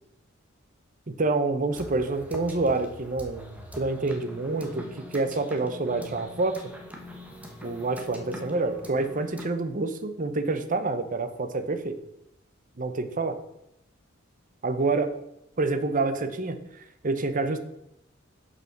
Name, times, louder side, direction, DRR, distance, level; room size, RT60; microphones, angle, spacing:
voice 1, 1.1-4.8 5.1-6.5 7.6-11.9 12.8-13.4 14.6-15.1 15.6-16.6 17.0-17.6, right 3 dB, 40° right, 9 dB, 0.7 m, -27 dB
sound 1, 1.7-9.5, left 1 dB, 5° right, 1.1 m, -43 dB
6.8 x 5.6 x 5.9 m, 0.80 s
head